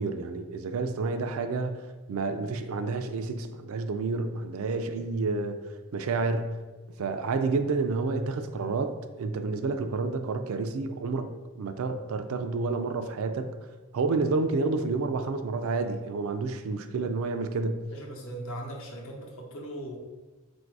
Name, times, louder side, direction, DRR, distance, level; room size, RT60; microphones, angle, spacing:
voice 1, 0.0-5.6 5.9-6.6 7.0-11.3 11.6-13.5 13.9-17.8, right 3 dB, 65° right, 8 dB, 0.4 m, -29 dB
voice 2, 17.9-20.0, right 1 dB, 65° left, 0 dB, 0.8 m, -39 dB
3.9 x 2.6 x 4.5 m, 1.2 s
head